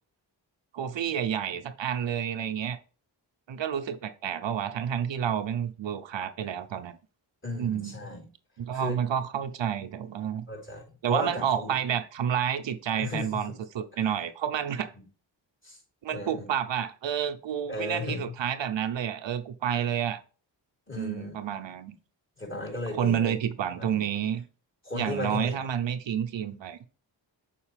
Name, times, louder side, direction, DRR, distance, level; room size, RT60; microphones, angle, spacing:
voice 1, 0.7-2.8 3.5-6.9 7.6-8.0 8.6-10.4 11.0-14.9 16.0-20.2 21.0-22.0 22.9-24.5 24.9-26.8, right 9 dB, 75° right, 0.7 m, -30 dB
voice 2, 7.4-8.2 8.7-9.0 10.5-11.8 13.0-13.6 15.6-15.8 16.1-16.5 17.7-18.3 20.9-21.4 22.4-23.4 23.8-24.0 24.8-25.6, left 2 dB, 25° left, 3.9 m, -35 dB
7.2 x 4.6 x 3.3 m
cardioid pair, 70°, 45 cm